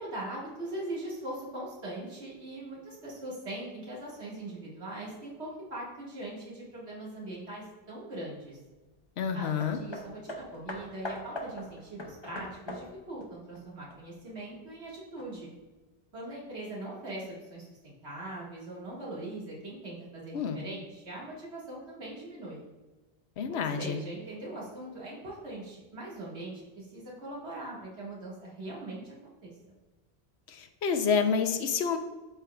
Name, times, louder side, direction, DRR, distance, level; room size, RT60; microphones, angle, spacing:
voice 1, 0.0-8.6 9.3-15.5 16.1-22.6 23.5-29.1 29.4-29.5, right 1 dB, 80° right, -5 dB, 2.1 m, -41 dB
voice 2, 9.2-9.8 20.3-20.6 23.4-24.0 30.5-32.0, left 6 dB, 80° left, 7 dB, 1.0 m, -28 dB
Hammer, 9.6-14.3 15.2-15.3, left 1 dB, 30° left, 0.7 m, -42 dB
11.5 x 4.5 x 2.3 m, 1.2 s
omnidirectional pair, 1.1 m